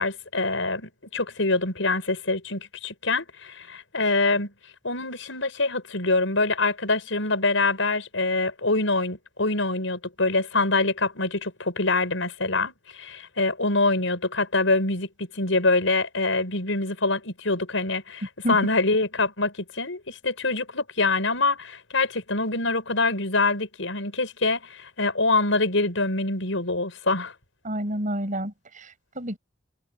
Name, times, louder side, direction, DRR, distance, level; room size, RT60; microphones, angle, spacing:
voice 1, 0.0-4.5 4.8-27.3, left 3 dB, 85° left, 5.7 m, -25 dB
voice 2, 27.6-29.4, equal, 45° right, 5.8 m, -29 dB
head